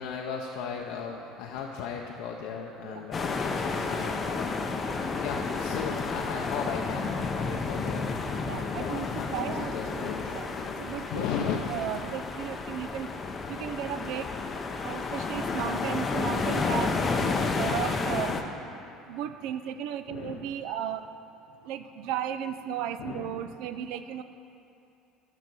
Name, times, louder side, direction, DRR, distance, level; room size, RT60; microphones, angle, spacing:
voice 1, 0.0-4.8 5.2-8.1 8.5-10.8 11.1-11.7 17.2-17.6 20.1-20.5 23.0-23.4, left 6 dB, 75° left, 0 dB, 0.6 m, -36 dB
sound 1, 3.1-18.4, left 4 dB, 25° left, 0.5 m, -31 dB
voice 2, 8.4-9.7 10.3-10.5 10.8-11.2 11.7-13.1 13.5-14.3 14.8-18.4 19.1-21.0 21.6-24.2, right 9 dB, 70° right, 10 dB, 0.3 m, -35 dB
11.5 x 4.1 x 6.1 m, 2.7 s
cardioid pair, 145°, 0 cm